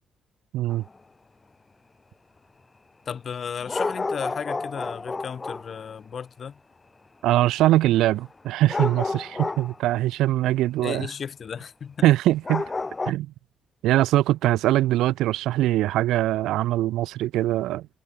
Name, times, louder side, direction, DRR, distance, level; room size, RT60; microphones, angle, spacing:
voice 1, 0.5-0.8 7.2-11.1 12.0-12.7 13.1-13.3 13.8-17.9, right 15 dB, 90° right, 0.6 m, -22 dB
sound 1, 0.7-0.9 3.6-5.8 8.7-9.8 10.3-10.4 10.7-10.8 11.5-11.6 12.4-13.1, left 3 dB, 25° left, 1.6 m, -30 dB
voice 2, 3.1-6.6 10.8-12.1, left 7 dB, 50° left, 1.9 m, -34 dB
cardioid pair, 90°, 0 cm